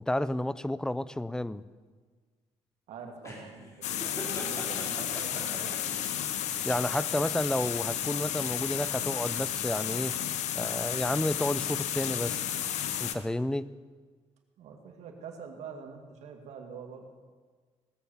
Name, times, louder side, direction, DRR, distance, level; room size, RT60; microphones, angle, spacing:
voice 1, 0.0-1.6 6.6-10.2 10.5-12.5 13.0-13.7, left 1 dB, 5° left, 17 dB, 0.4 m, -31 dB
voice 2, 2.9-6.0 14.6-17.1, right 5 dB, 75° right, 3 dB, 2.2 m, -45 dB
sound 1, 3.2-6.1, left 1 dB, 25° left, 3.5 m, -41 dB
sound 2, 3.8-13.1, left 10 dB, 80° left, 0.9 m, -32 dB
18.0 x 7.2 x 7.1 m, 1.5 s
cardioid pair, 120°, 12 cm